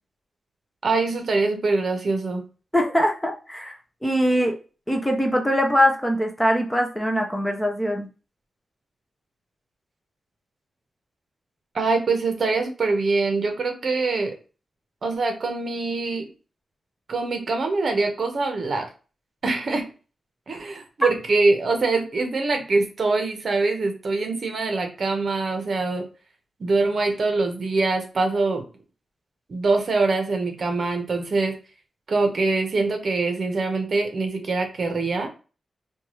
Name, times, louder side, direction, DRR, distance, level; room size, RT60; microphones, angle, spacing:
voice 1, 0.8-2.4 11.7-14.3 15.0-16.3 17.1-18.9 19.4-19.8 20.5-26.0 26.6-28.6 29.5-31.5 32.1-35.3, right 3 dB, 50° right, 4 dB, 0.8 m, -24 dB
voice 2, 2.7-3.8 4.0-4.6 4.9-8.1, equal, 5° left, 3 dB, 0.5 m, -22 dB
4.4 x 2.3 x 3.0 m, 0.34 s
wide cardioid pair, 160°, 0 cm